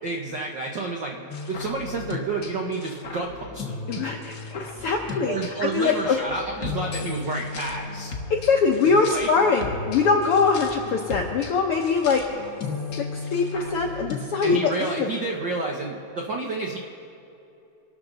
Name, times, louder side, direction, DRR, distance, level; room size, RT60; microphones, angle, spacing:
voice 1, 0.0-4.1 5.2-8.1 8.9-9.3 14.4-16.8, right 3 dB, 70° right, 0 dB, 1.1 m, -30 dB
sound 1, 1.3-15.0, left 3 dB, 55° left, 1.0 m, -36 dB
voice 2, 3.9-5.3 5.6-6.2 8.3-12.2 13.1-15.1, left 5 dB, 75° left, 2 dB, 1.3 m, -22 dB
25.5 x 12.5 x 4.0 m, 2.8 s
omnidirectional pair, 3.7 m